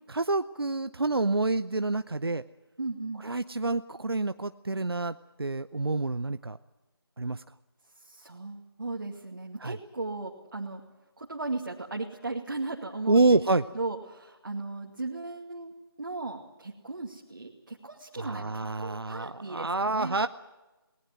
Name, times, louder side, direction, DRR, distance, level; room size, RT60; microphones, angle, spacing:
voice 1, 0.1-2.4 3.2-6.6 7.2-7.4 9.6-9.8 13.1-13.6 18.2-20.3, right 3 dB, 70° right, 12 dB, 0.7 m, -27 dB
voice 2, 2.8-3.2 8.0-10.8 11.2-20.3, right 3 dB, 50° right, 0 dB, 2.3 m, -37 dB
21.0 x 18.5 x 9.3 m, 1.1 s
figure-of-eight pair, 160°, 13 cm